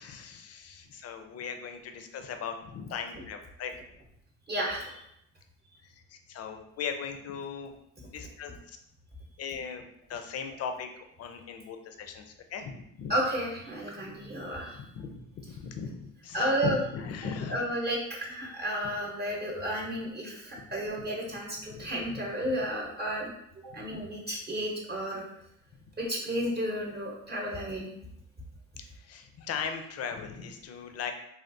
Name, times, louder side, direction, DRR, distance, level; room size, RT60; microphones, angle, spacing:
voice 1, 0.0-3.7 5.8-7.7 8.1-8.8 9.4-9.8 10.1-13.1 14.7-17.6 21.0-21.1 21.7-22.5 23.8-23.9 28.8-31.1, left 6 dB, 55° left, 6 dB, 0.5 m, -38 dB
voice 2, 4.5-5.0 13.1-14.8 16.3-16.8 17.5-23.3 23.6-25.2 26.0-27.9, equal, 35° right, -3 dB, 0.8 m, -32 dB
3.4 x 2.3 x 2.6 m, 0.77 s
cardioid pair, 90°, 30 cm